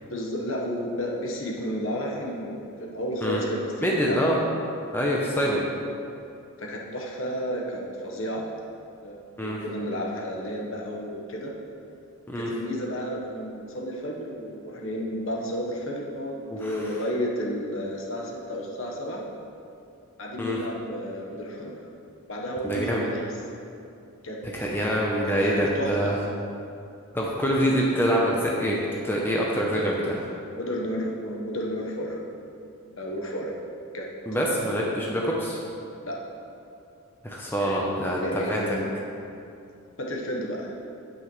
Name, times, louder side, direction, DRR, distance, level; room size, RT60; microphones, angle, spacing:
voice 1, 0.1-4.2 5.3-5.7 6.6-8.4 9.0-11.5 12.3-19.2 20.2-21.8 22.3-23.3 24.2-24.4 25.2-26.1 30.5-32.2 33.0-33.5 33.9-34.9 36.0-36.2 37.6-38.9 40.0-40.7, equal, 60° left, -2 dB, 1.2 m, -32 dB
voice 2, 3.8-4.4 4.9-5.6 9.4-9.6 12.3-12.5 16.5-16.8 20.4-20.6 22.6-23.0 24.5-26.2 27.1-28.8 29.0-30.2 34.3-35.6 37.2-38.6, equal, 10° left, -3 dB, 0.7 m, -25 dB
8.9 x 8.0 x 3.2 m, 2.6 s
head